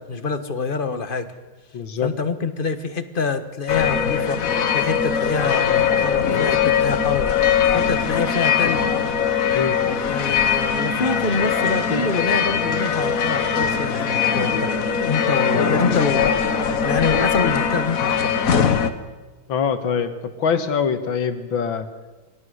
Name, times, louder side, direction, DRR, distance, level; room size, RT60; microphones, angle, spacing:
voice 1, 0.1-1.3 2.0-4.4 4.7-7.3 7.7-8.9 10.1-14.7 15.1-16.3 16.8-18.4, left 4 dB, 30° left, 9 dB, 1.2 m, -25 dB
voice 2, 1.7-2.1 9.5-9.8 11.9-12.1 19.5-21.9, left 6 dB, 75° left, 9 dB, 2.2 m, -24 dB
sound 1, 3.7-18.9, left 7 dB, 50° left, 1.4 m, -21 dB
22.5 x 17.5 x 8.0 m, 1.3 s
omnidirectional pair, 2.2 m